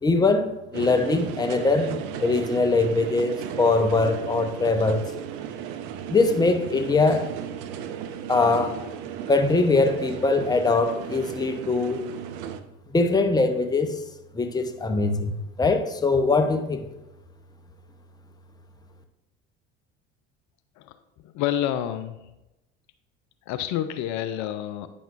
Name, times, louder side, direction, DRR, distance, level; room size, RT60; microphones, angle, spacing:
voice 1, 0.0-1.9 2.2-5.0 6.1-7.2 8.3-8.8 9.3-12.0 12.9-13.9 14.3-16.8, left 3 dB, 10° left, 7 dB, 0.7 m, -22 dB
sound 1, 0.7-12.6, right 8 dB, 60° right, 0.7 m, -35 dB
voice 2, 21.2-22.2 23.5-24.9, left 11 dB, 55° left, 11 dB, 0.5 m, -28 dB
9.0 x 6.0 x 2.5 m, 0.95 s
hypercardioid pair, 70°, 34 cm